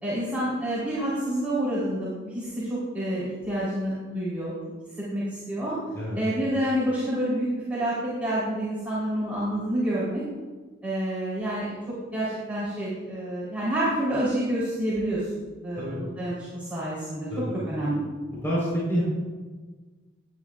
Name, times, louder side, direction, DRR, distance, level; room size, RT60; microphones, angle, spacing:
voice 1, 0.0-4.5 5.1-5.8 6.2-10.2 10.8-11.8 12.1-15.3 15.6-17.3 17.7-18.0, right 1 dB, 5° right, -10 dB, 3.7 m, -28 dB
voice 2, 18.4-19.0, equal, 15° left, -8 dB, 4.1 m, -27 dB
19.0 x 9.7 x 2.5 m, 1.3 s
head